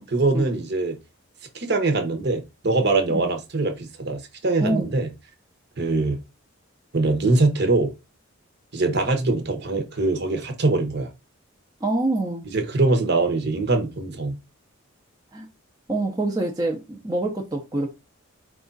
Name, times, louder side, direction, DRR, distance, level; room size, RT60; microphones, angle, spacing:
voice 1, 0.1-1.0 1.5-5.1 5.8-6.2 6.9-7.9 8.7-11.1 12.4-14.4, right 3 dB, 50° right, 0.9 m, -23 dB
voice 2, 11.8-12.5 15.3-15.5 15.9-17.9, right 2 dB, 20° right, 0.6 m, -25 dB
4.8 x 2.4 x 3.9 m
head